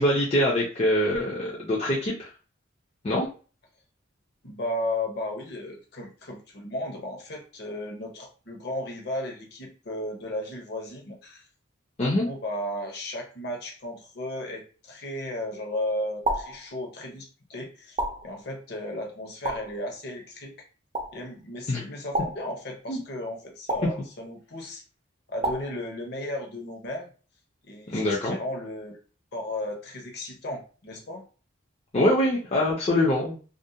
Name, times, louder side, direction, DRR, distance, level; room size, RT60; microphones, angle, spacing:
voice 1, 0.0-2.3 3.0-3.3 12.0-12.3 21.7-21.8 22.9-23.0 27.9-28.4 31.9-33.5, left 1 dB, 30° left, -4 dB, 0.4 m, -24 dB
voice 2, 4.4-11.5 12.2-20.5 21.1-24.8 25.3-27.1 27.6-29.0 29.3-31.2, left 1 dB, 55° left, 1 dB, 0.8 m, -35 dB
sound 1, 16.3-16.7 18.0-18.4 19.5-19.8 20.9-21.2 22.1-22.6 23.7-24.0 25.4-25.8, right 2 dB, 30° right, 0.4 m, -30 dB
2.4 x 2.1 x 2.7 m, 0.37 s
head